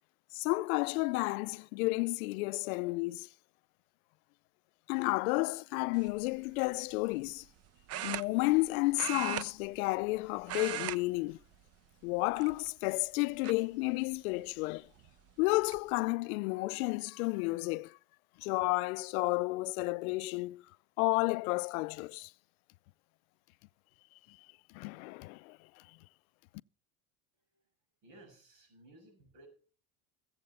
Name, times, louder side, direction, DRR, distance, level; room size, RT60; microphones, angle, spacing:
voice 1, 0.3-3.3 4.9-7.4 8.0-11.4 12.0-14.9 15.4-18.0 18.4-20.6 21.0-22.3 24.7-25.6, left 23 dB, 75° left, 0.5 m, -31 dB
sound 1, 6.0-6.2 7.9-8.7 8.9-10.2 10.4-11.0 11.3-11.6 12.3-12.9 13.4-13.5 15.0-15.1 15.4-15.8, right 11 dB, 35° right, 0.6 m, -38 dB
voice 2, 28.0-29.5, right 1 dB, 75° right, 7.0 m, -57 dB
16.0 x 7.8 x 5.3 m
supercardioid pair, 95°, 43 cm